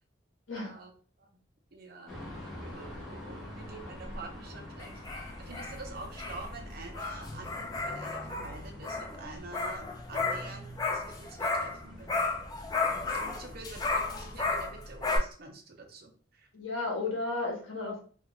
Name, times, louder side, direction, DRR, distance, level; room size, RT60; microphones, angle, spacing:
voice 1, 0.6-0.9 1.2-1.3 1.7-12.1 13.0-16.5, right 3 dB, 50° right, 3 dB, 0.6 m, -47 dB
sound 1, 2.1-14.6, left 1 dB, ahead, 0.8 m, -47 dB
sound 2, 4.8-11.8 12.1-15.2, left 3 dB, 20° left, 0.3 m, -34 dB
voice 2, 16.5-18.0, left 3 dB, 80° left, -1 dB, 1.0 m, -33 dB
2.4 x 2.3 x 2.9 m, 0.42 s
head